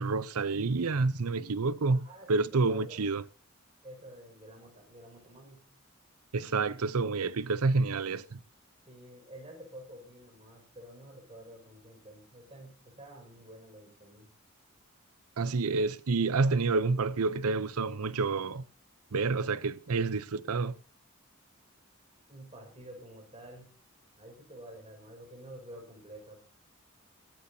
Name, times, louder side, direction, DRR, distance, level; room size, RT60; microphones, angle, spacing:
voice 1, 0.0-3.2 6.3-8.4 15.4-18.6 19.1-20.8, right 3 dB, 85° right, 0.7 m, -29 dB
voice 2, 1.9-3.1 3.8-5.8 8.9-14.3 22.3-23.7 24.2-26.4, right 1 dB, 25° right, 5.7 m, -49 dB
25.5 x 13.5 x 2.8 m
head